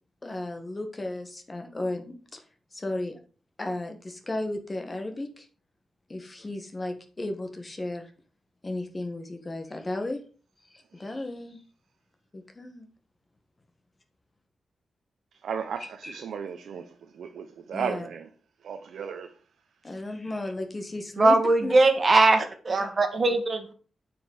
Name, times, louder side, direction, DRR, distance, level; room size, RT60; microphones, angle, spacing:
voice 1, 0.2-2.4 2.7-3.2 3.6-5.5 6.1-8.1 8.6-10.2 10.7-11.6 12.3-12.9 16.0-16.1 17.7-18.1 19.8-21.4 21.6-21.7, left 2 dB, 25° left, 1.7 m, -34 dB
voice 2, 15.4-18.3 18.6-19.3, right 7 dB, 90° right, 0.9 m, -35 dB
voice 3, 21.2-23.7, right 2 dB, 35° right, 2.0 m, -21 dB
9.0 x 5.3 x 6.5 m
wide cardioid pair, 140°, 0 cm